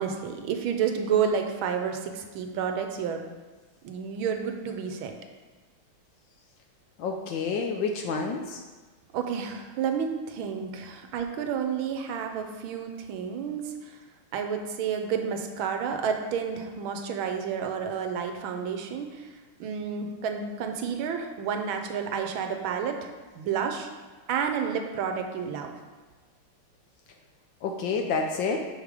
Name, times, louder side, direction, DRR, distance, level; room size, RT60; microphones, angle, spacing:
voice 1, 0.0-3.3 3.8-5.1 9.1-14.0 14.3-19.3 19.6-23.9 24.3-25.7, right 7 dB, 75° right, 5 dB, 1.4 m, -30 dB
voice 2, 7.0-8.6 27.6-28.6, left 4 dB, 75° left, 3 dB, 1.1 m, -29 dB
6.4 x 5.1 x 4.8 m, 1.3 s
omnidirectional pair, 2.4 m